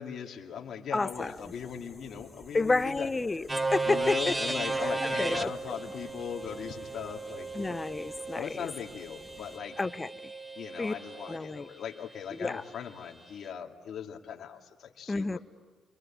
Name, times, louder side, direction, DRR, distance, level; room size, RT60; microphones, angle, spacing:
voice 1, 0.0-3.1 3.9-7.8 8.3-9.8 10.6-15.4, left 8 dB, 65° left, 2.5 m, -39 dB
voice 2, 0.9-1.4 2.5-4.4 5.0-5.5 7.5-8.7 9.8-10.3 10.8-10.9 11.3-11.7 12.4-12.6 15.1-15.4, left 3 dB, 20° left, 0.8 m, -30 dB
sound 1, 1.1-9.6, left 1 dB, 5° left, 6.3 m, -54 dB
sound 2, 3.5-11.4, right 3 dB, 15° right, 1.3 m, -35 dB
29.0 x 23.5 x 8.8 m
cardioid pair, 90°, 0 cm